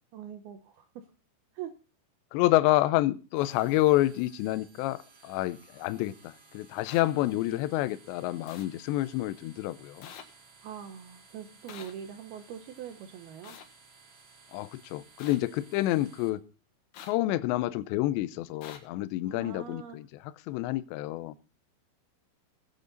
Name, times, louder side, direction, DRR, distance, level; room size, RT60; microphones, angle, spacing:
voice 1, 0.1-1.1 1.5-1.7 10.6-13.6 19.2-20.0, right 9 dB, 80° right, 7 dB, 2.2 m, -43 dB
voice 2, 2.3-10.1 14.5-16.4 17.1-20.1 20.5-21.4, left 16 dB, 80° left, 13 dB, 2.7 m, -28 dB
sound 1, 3.3-16.3, right 4 dB, 45° right, 3.0 m, -57 dB
sound 2, 6.8-7.0 8.5-8.7 10.0-10.2 11.7-11.9 13.4-13.6 15.2-15.4 16.9-17.1 18.6-18.8, left 8 dB, 65° left, 3.0 m, -45 dB
19.0 x 8.2 x 3.9 m, 0.35 s
omnidirectional pair, 5.5 m